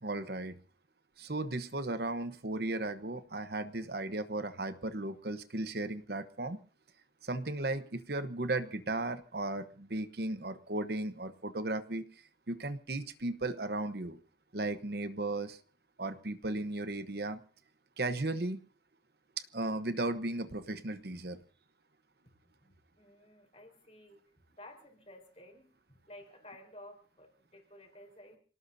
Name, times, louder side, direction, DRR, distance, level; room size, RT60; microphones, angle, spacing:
voice 1, 0.0-0.6 1.2-6.6 7.2-12.1 12.5-14.2 14.5-15.6 16.0-17.4 18.0-18.6 19.5-21.4, right 2 dB, 60° right, 10 dB, 1.0 m, -35 dB
voice 2, 22.4-24.2 24.5-28.4, left 1 dB, 35° left, 4 dB, 4.4 m, -54 dB
27.5 x 18.0 x 2.7 m, 0.40 s
head